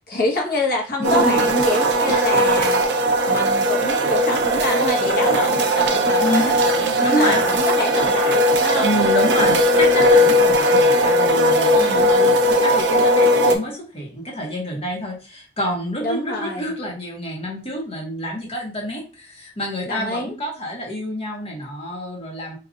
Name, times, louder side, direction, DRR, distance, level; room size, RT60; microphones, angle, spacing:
voice 1, 0.1-3.0 3.3-8.9 11.7-12.1 16.0-16.7 19.9-20.3, left 1 dB, 55° left, -1 dB, 1.2 m, -26 dB
voice 2, 1.0-1.5 6.2-6.5 7.0-7.4 8.8-22.6, equal, 35° left, -2 dB, 1.3 m, -27 dB
sound 1, 1.0-13.5, equal, 70° right, 0.7 m, -18 dB
5.0 x 2.6 x 2.5 m, 0.35 s
head